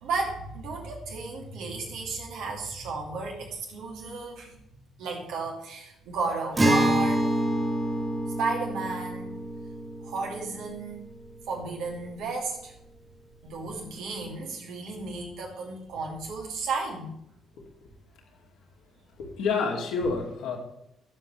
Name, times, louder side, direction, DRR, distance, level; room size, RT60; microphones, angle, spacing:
voice 1, 0.0-4.5 5.0-7.2 8.4-9.4 10.0-11.0 11.5-12.7 13.4-17.2, right 4 dB, 65° right, 0 dB, 2.9 m, -33 dB
Acoustic guitar, 6.6-12.0, right 1 dB, 25° right, 2.7 m, -28 dB
voice 2, 17.5-17.9 19.2-20.6, left 4 dB, 65° left, 0 dB, 2.8 m, -29 dB
19.0 x 7.7 x 3.4 m, 0.81 s
figure-of-eight pair, 45°, 0 cm